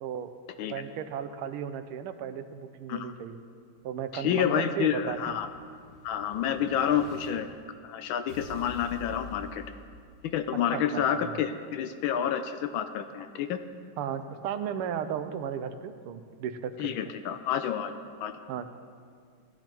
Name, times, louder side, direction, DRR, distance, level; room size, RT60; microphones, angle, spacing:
voice 1, 0.0-0.3 0.7-3.4 3.8-5.4 10.7-11.4 14.0-16.9 18.5-18.7, right 8 dB, 85° right, 10 dB, 1.5 m, -35 dB
Explosion, 3.9-7.3 8.3-10.3, left 3 dB, 35° left, 3.7 m, -47 dB
voice 2, 4.1-5.5 6.0-7.5 7.8-9.6 10.2-13.6 16.8-17.9 18.2-18.3, left 9 dB, 75° left, 9 dB, 1.3 m, -29 dB
16.5 x 11.5 x 3.0 m, 2.1 s
omnidirectional pair, 2.4 m